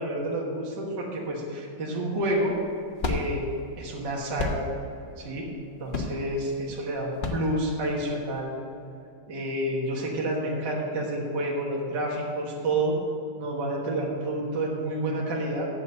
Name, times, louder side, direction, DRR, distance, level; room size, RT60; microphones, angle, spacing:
voice 1, 0.0-2.5 3.0-3.4 3.8-4.7 5.2-5.5 5.8-8.5 9.3-13.0 13.4-15.7, right 1 dB, 55° right, -3 dB, 2.0 m, -29 dB
sound 1, 2.2-8.4, left 3 dB, 80° left, 0.4 m, -33 dB
8.3 x 7.6 x 7.5 m, 2.6 s
omnidirectional pair, 2.4 m